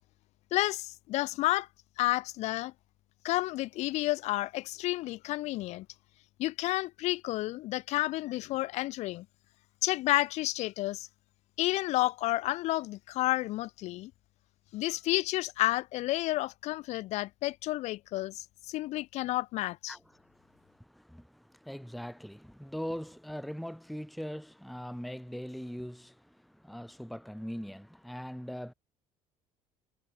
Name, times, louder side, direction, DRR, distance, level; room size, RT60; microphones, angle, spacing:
voice 1, 0.5-1.7 2.0-2.7 3.2-5.9 6.4-9.3 9.8-11.1 11.6-14.1 14.7-20.0, left 18 dB, 60° left, 0.5 m, -31 dB
voice 2, 19.9-28.7, equal, ahead, 0.9 m, -41 dB
cardioid pair, 140°, 13 cm